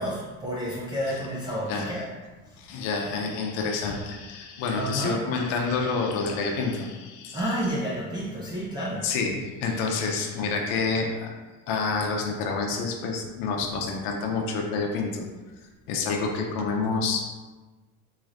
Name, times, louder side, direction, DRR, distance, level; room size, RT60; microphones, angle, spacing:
voice 1, 0.0-2.1 4.7-5.3 7.3-9.1, equal, 10° right, -8 dB, 0.4 m, -30 dB
voice 2, 2.6-7.4 9.0-11.3 11.7-15.2 15.9-17.3, left 4 dB, 75° left, 1 dB, 0.6 m, -28 dB
4.0 x 3.1 x 2.4 m, 1.3 s
cardioid pair, 145°, 38 cm